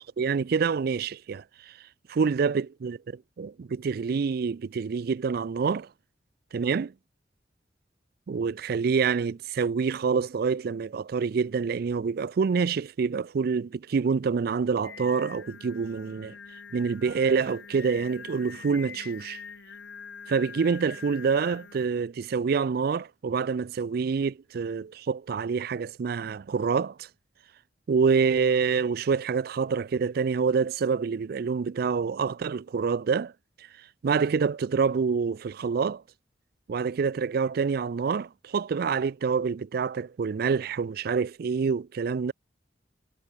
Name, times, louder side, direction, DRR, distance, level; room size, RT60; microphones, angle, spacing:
voice 1, 0.0-1.4 2.1-3.0 3.4-5.9 6.5-6.9 8.3-16.4 16.7-19.4 20.3-27.1 27.9-33.3 34.0-36.0 36.7-42.3, right 5 dB, 55° right, 0.4 m, -27 dB
Singing, 14.8-21.9, left 6 dB, 90° left, 1.6 m, -44 dB
head